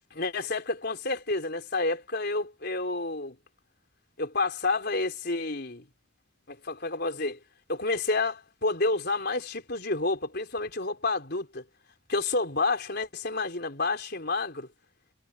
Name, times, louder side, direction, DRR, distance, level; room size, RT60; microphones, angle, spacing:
voice 1, 0.1-3.4 4.2-5.9 6.5-7.4 7.7-11.6 12.1-14.7, left 3 dB, 55° left, 4.2 m, -29 dB
head